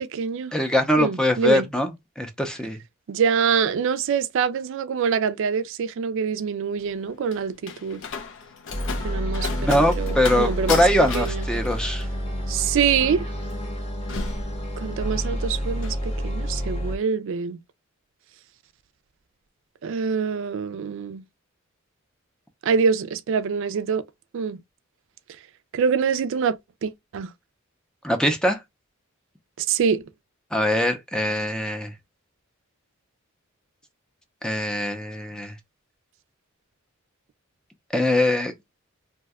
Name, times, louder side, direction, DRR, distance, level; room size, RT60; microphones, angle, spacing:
voice 1, 0.0-0.5 1.0-1.7 3.1-8.0 9.0-11.5 12.5-13.2 14.8-17.6 19.8-21.2 22.6-24.0 24.3-24.6 25.7-26.6 26.8-27.3 29.6-30.0, right 6 dB, 65° right, 0.4 m, -25 dB
voice 2, 0.5-2.8 9.5-12.1 28.0-28.6 30.5-31.9 34.4-35.5 37.9-38.5, left 1 dB, 5° left, 0.5 m, -22 dB
Slam, 6.8-15.3 15.6-16.0, left 5 dB, 65° left, 0.5 m, -35 dB
sound 1, 8.7-17.0, equal, 30° left, 0.9 m, -29 dB
2.7 x 2.2 x 3.4 m
head